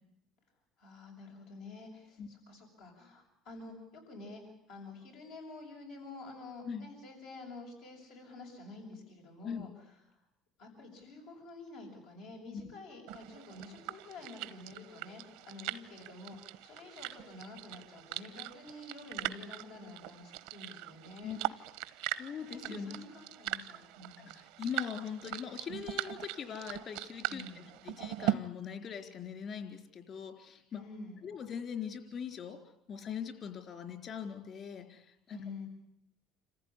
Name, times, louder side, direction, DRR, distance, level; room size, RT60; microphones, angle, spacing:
voice 1, 0.8-4.4 4.7-9.7 10.6-21.4 22.0-24.4 27.3-27.7 30.7-31.2 35.3-35.7, left 2 dB, 85° left, 0 dB, 6.8 m, -49 dB
sound 1, 13.1-28.3, right 15 dB, 85° right, 0.9 m, -40 dB
voice 2, 22.1-23.0 24.2-27.4 27.8-30.8 31.2-32.6 32.9-35.4, left 7 dB, 50° left, 7 dB, 4.2 m, -41 dB
27.5 x 15.0 x 9.9 m, 0.77 s
supercardioid pair, 95°, 0 cm